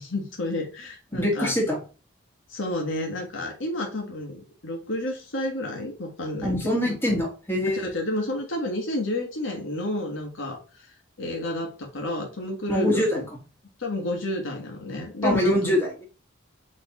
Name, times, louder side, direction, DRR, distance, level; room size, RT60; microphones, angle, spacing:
voice 1, 0.0-1.6 2.5-6.9 7.6-10.6 11.2-13.2 13.8-15.8, left 1 dB, 75° left, 1 dB, 1.3 m, -31 dB
voice 2, 1.2-1.8 6.4-7.8 12.7-13.2 15.2-16.0, left 1 dB, 10° left, -1 dB, 1.4 m, -23 dB
4.2 x 3.2 x 4.0 m, 0.34 s
head